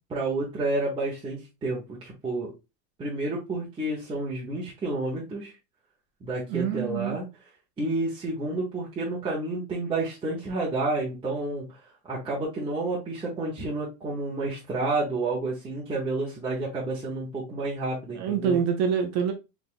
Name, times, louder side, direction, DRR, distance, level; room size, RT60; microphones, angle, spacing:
voice 1, 0.1-2.5 3.0-5.5 6.2-7.2 7.8-11.8 12.1-18.6, right 2 dB, 10° right, 0.8 m, -30 dB
voice 2, 6.5-7.2 18.1-19.3, right 7 dB, 35° right, 0.5 m, -26 dB
3.9 x 3.5 x 2.5 m
supercardioid pair, 160°, 46 cm